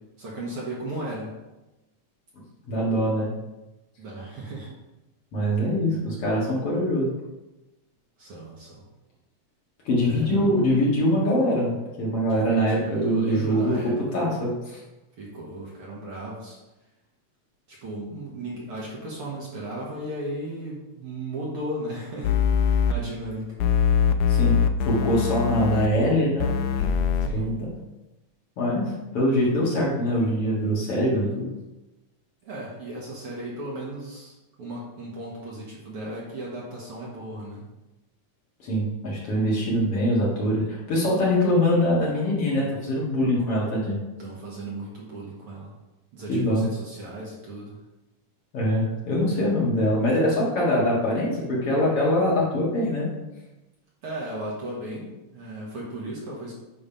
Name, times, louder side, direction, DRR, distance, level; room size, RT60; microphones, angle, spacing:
voice 1, 0.0-1.4 4.0-4.7 8.2-8.8 10.0-10.5 12.3-14.3 15.2-16.6 17.7-22.3 22.6-23.6 27.2-27.4 32.4-37.7 44.2-45.7 46.1-47.8 54.0-56.5, right 1 dB, 55° right, -5 dB, 2.0 m, -36 dB
voice 2, 2.7-3.3 5.3-7.1 9.9-13.8 14.1-14.8 24.3-24.6 24.9-26.9 27.3-27.7 28.6-31.5 38.6-44.0 46.3-46.7 48.5-53.1, equal, 50° left, -5 dB, 2.4 m, -23 dB
sound 1, 22.2-22.9 23.6-25.9 26.4-27.3, left 7 dB, 80° left, 1.7 m, -22 dB
8.9 x 3.4 x 5.6 m, 1.0 s
omnidirectional pair, 3.5 m